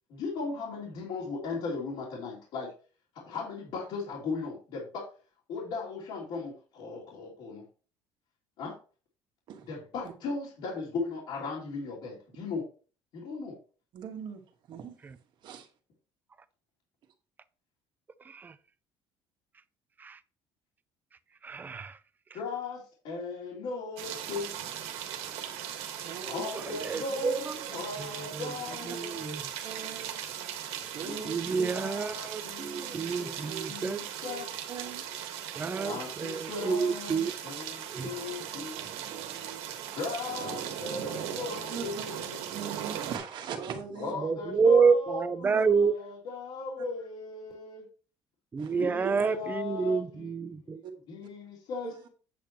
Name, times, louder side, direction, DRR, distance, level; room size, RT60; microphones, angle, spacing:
voice 1, 0.2-2.7 3.1-5.1 5.5-7.6 8.6-8.8 9.6-12.7 13.1-13.6 22.3-24.5 26.3-29.4 31.0-34.5 34.9-35.0 35.8-39.1 39.9-42.4 43.9-47.8 48.7-50.3 51.1-51.9, left 4 dB, 60° left, 2.9 m, -37 dB
voice 2, 13.9-14.4 14.7-15.0 15.4-15.7 26.0-26.5 29.6-30.2 30.9-31.7 33.1-33.7 34.2-35.1 35.6-36.0 39.1-39.7 41.7-41.8 42.5-44.1 45.4-45.6 48.6-49.3 50.8-50.9 51.2-51.3 51.8-51.9, right 7 dB, 50° right, 1.6 m, -40 dB
voice 3, 21.4-22.0 26.8-27.5 28.0-28.5 28.9-29.4 31.2-34.0 35.6-37.3 37.9-38.1 44.2-45.9 48.5-50.8, right 5 dB, 20° right, 0.4 m, -28 dB
sound 1, 24.0-43.2, right 9 dB, 90° right, 1.5 m, -38 dB
8.4 x 8.2 x 3.0 m
cardioid pair, 165°, 10 cm